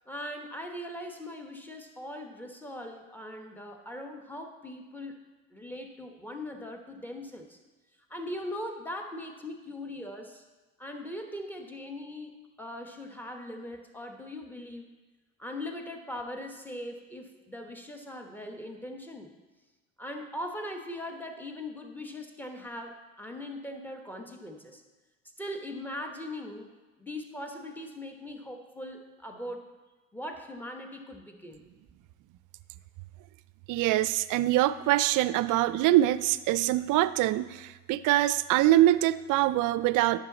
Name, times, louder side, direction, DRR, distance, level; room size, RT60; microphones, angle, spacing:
voice 1, 0.1-5.2 5.5-7.6 8.1-10.4 10.8-12.3 12.6-14.9 15.4-19.3 20.0-24.8 25.4-26.7 27.0-29.7 30.1-31.6, left 1 dB, 5° left, 4 dB, 1.1 m, -40 dB
voice 2, 33.7-40.2, right 14 dB, 50° right, 16 dB, 0.4 m, -24 dB
9.5 x 7.1 x 4.1 m, 1.2 s
supercardioid pair, 80°, 42 cm